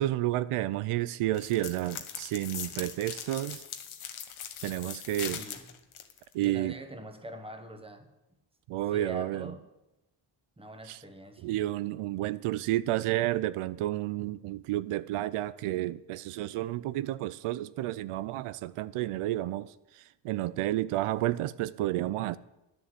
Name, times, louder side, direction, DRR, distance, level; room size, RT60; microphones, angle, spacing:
voice 1, 0.0-3.6 4.6-5.4 6.3-6.8 8.7-9.5 10.9-11.0 11.4-22.4, right 15 dB, 90° right, 0.6 m, -31 dB
sound 1, 1.3-6.4, left 8 dB, 75° left, 1.3 m, -40 dB
voice 2, 5.2-5.7 6.4-8.1 8.9-9.6 10.6-11.6, right 1 dB, 10° right, 1.3 m, -43 dB
10.5 x 7.1 x 9.1 m
cardioid pair, 120°, 50 cm